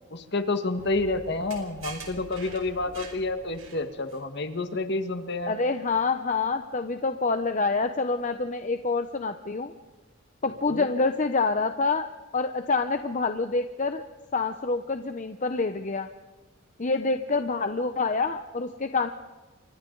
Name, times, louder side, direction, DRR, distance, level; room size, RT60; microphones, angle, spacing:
voice 1, 0.1-5.5 10.4-10.9, left 2 dB, 55° left, 8 dB, 1.7 m, -29 dB
sound 1, 0.8-4.2, right 4 dB, 75° right, 5.0 m, -45 dB
voice 2, 5.5-9.7 10.4-12.1 12.3-14.0 14.3-16.1 16.8-19.1, left 3 dB, 35° left, 8 dB, 0.8 m, -27 dB
29.5 x 24.5 x 4.0 m, 1.3 s
head